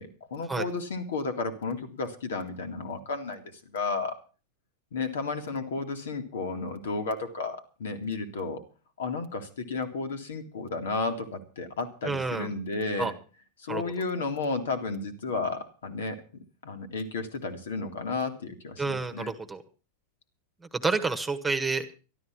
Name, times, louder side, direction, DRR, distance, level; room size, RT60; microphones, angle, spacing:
voice 1, 0.0-3.4 3.7-4.2 4.9-8.6 9.0-13.1 13.6-16.2 16.6-19.3, left 3 dB, 60° left, 6 dB, 2.1 m, -32 dB
voice 2, 12.0-12.5 13.0-13.1 13.7-13.9 18.8-19.6 20.7-21.8, right 4 dB, 10° right, 9 dB, 1.5 m, -29 dB
13.0 x 12.5 x 5.9 m, 0.36 s
figure-of-eight pair, 90°, 0 cm